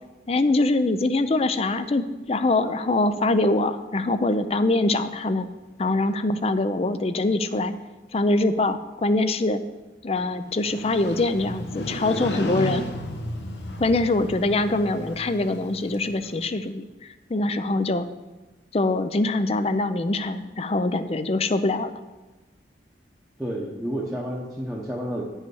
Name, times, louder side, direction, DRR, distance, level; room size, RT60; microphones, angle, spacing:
voice 1, 0.3-5.5 5.8-7.7 8.1-9.6 10.0-12.8 13.8-16.8 17.3-18.1 18.7-21.9, left 2 dB, 35° left, 11 dB, 0.5 m, -23 dB
Motorcycle, 10.5-16.4, left 1 dB, 65° left, 1.0 m, -34 dB
voice 2, 23.4-25.2, equal, ahead, -6 dB, 0.9 m, -30 dB
9.6 x 5.5 x 6.3 m, 1.2 s
head